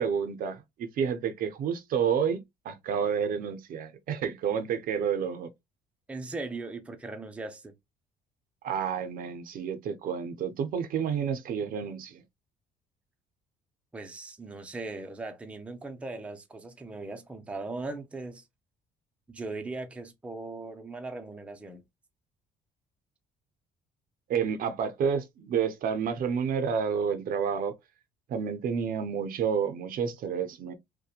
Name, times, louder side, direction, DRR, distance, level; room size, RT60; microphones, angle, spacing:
voice 1, 0.0-5.5 8.6-12.2 24.3-27.7 28.3-30.7, right 7 dB, 55° right, 0.5 m, -30 dB
voice 2, 6.1-7.7 13.9-18.4 19.3-21.8, right 3 dB, 5° right, 0.4 m, -39 dB
2.8 x 2.1 x 2.3 m
cardioid pair, 110°, 17 cm